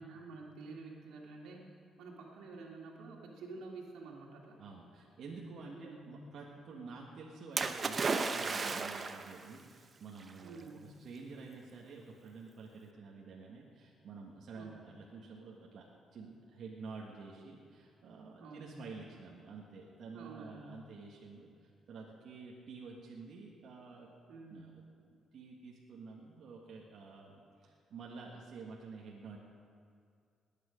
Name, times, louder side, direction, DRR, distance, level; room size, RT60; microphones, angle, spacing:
voice 1, 0.0-1.7 2.0-4.6 5.7-6.1 10.4-10.9 14.5-14.7 18.4-18.7 20.1-20.8 24.3-24.7, right 3 dB, 85° right, -1 dB, 2.4 m, -49 dB
voice 2, 4.6-24.1 24.5-24.8 25.1-29.4, right 4 dB, 65° right, -2 dB, 1.6 m, -50 dB
Splash splatter, 7.6-9.4 10.3-10.4, right 4 dB, 40° right, 0.8 m, -34 dB
20.0 x 9.2 x 5.2 m, 2.2 s
cardioid pair, 90°, 0 cm